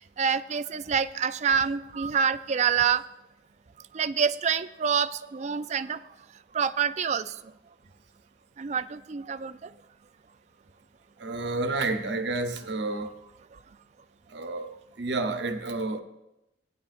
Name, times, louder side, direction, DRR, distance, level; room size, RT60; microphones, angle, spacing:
voice 1, 0.2-3.0 3.9-6.0 6.5-7.2 8.6-9.5, right 7 dB, 40° right, 13 dB, 0.4 m, -26 dB
voice 2, 11.2-13.2 14.3-16.0, right 3 dB, 65° right, 7 dB, 0.9 m, -30 dB
16.5 x 10.0 x 2.5 m, 0.93 s
head